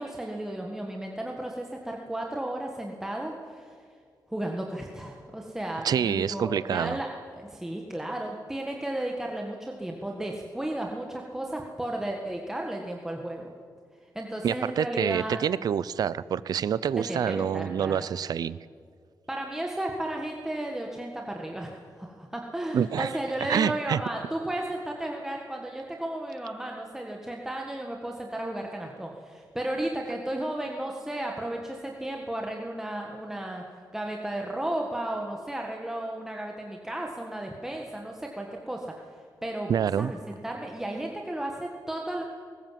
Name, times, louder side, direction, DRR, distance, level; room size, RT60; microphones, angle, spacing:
voice 1, 0.0-3.7 4.3-13.5 14.2-15.4 17.0-18.1 19.3-33.6 33.9-38.9 39.4-39.7 40.0-42.2, right 1 dB, 5° right, 0 dB, 1.7 m, -34 dB
voice 2, 5.8-7.0 14.4-18.6 22.7-23.1 23.5-24.0 39.7-40.1, right 8 dB, 65° right, 18 dB, 0.6 m, -27 dB
21.5 x 19.0 x 7.6 m, 2.1 s
wide cardioid pair, 130°, 7 cm